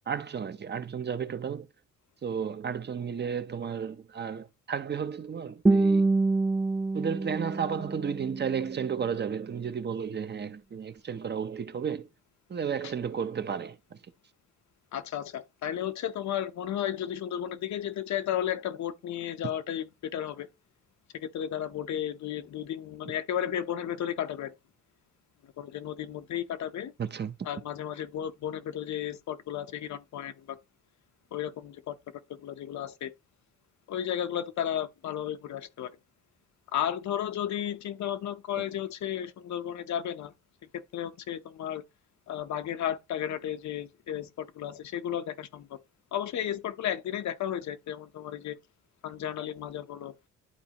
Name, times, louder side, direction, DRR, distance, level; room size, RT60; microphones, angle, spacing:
voice 1, 0.0-1.7 2.2-6.1 6.9-12.1 12.5-14.0 27.0-27.3, right 7 dB, 35° right, 0.8 m, -33 dB
Guitar, 5.7-8.7, right 3 dB, 10° right, 0.4 m, -26 dB
voice 2, 14.9-20.5 21.1-24.5 25.6-26.9 27.4-30.6 31.3-32.0 32.3-33.1 33.9-35.9 36.7-40.3 40.9-41.8 42.3-45.8 46.1-48.6 49.0-50.2, left 10 dB, 65° left, 0.9 m, -33 dB
11.5 x 4.1 x 2.9 m
cardioid pair, 90°, 30 cm